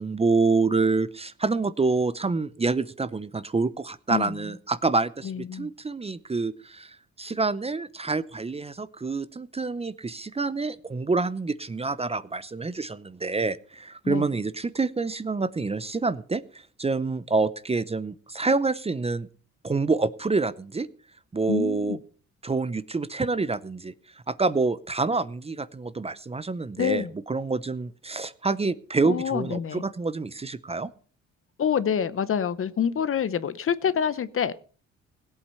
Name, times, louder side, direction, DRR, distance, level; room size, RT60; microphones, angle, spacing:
voice 1, 0.0-19.3 19.6-20.9 21.3-22.0 22.4-23.9 24.3-30.9, right 3 dB, 20° right, 16 dB, 0.7 m, -27 dB
voice 2, 5.2-5.7 14.0-14.3 21.5-22.0 26.8-27.1 29.0-29.8 31.6-34.5, left 8 dB, 45° left, 15 dB, 0.9 m, -27 dB
17.0 x 8.3 x 5.6 m, 0.42 s
cardioid pair, 90°, 30 cm